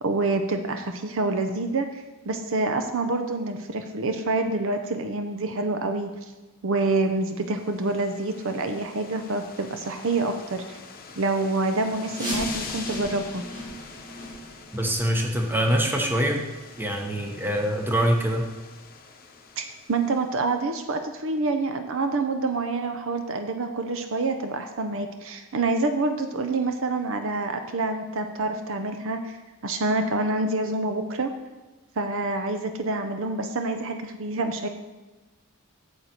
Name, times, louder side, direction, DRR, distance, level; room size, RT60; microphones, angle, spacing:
voice 1, 0.0-6.1 6.6-10.8 11.2-13.4 19.6-29.3 29.6-31.3 32.0-34.7, right 3 dB, 65° right, 7 dB, 0.7 m, -27 dB
sound 1, 7.2-20.5, left 5 dB, 45° left, 0.8 m, -44 dB
sound 2, 12.1-17.7 18.0-18.1 18.7-18.8 19.4-19.5 20.0-20.1, equal, 40° right, 3.2 m, -37 dB
voice 2, 14.7-16.4 16.8-18.4, equal, 10° right, 2 dB, 1.0 m, -24 dB
8.8 x 6.7 x 4.4 m, 1.1 s
head